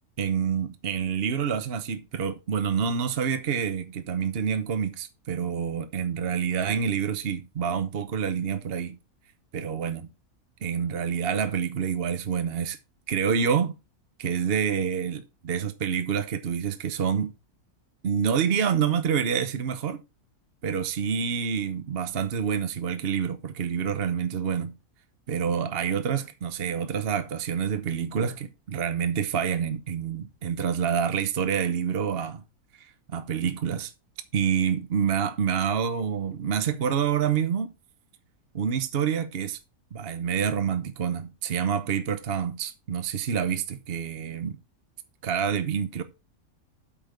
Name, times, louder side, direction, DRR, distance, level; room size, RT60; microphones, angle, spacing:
voice 1, 0.2-9.0 9.5-10.1 10.6-12.8 13.1-13.7 14.2-17.3 18.0-20.0 20.6-24.7 25.3-32.4 32.8-33.9 34.3-37.7 38.5-39.6 39.9-44.6 45.2-46.0, right 7 dB, 45° right, 1.0 m, -27 dB
8.4 x 5.9 x 4.8 m
omnidirectional pair, 1.6 m